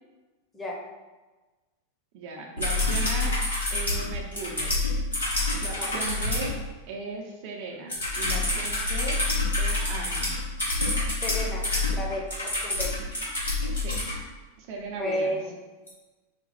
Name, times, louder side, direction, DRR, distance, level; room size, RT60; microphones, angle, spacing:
voice 1, 2.1-3.4 3.7-4.8 5.6-6.5 6.9-9.2 9.6-10.3 13.7-14.0 14.6-15.4, right 3 dB, 50° right, 0 dB, 0.8 m, -37 dB
sound 1, 2.6-6.5 7.9-14.1 15.9-16.0, left 2 dB, 75° left, 1.5 m, -27 dB
voice 2, 11.2-11.6 11.9-12.9 14.9-15.5, left 1 dB, 15° left, -2 dB, 1.0 m, -32 dB
5.1 x 2.4 x 4.1 m, 1.2 s
figure-of-eight pair, 90°, 0 cm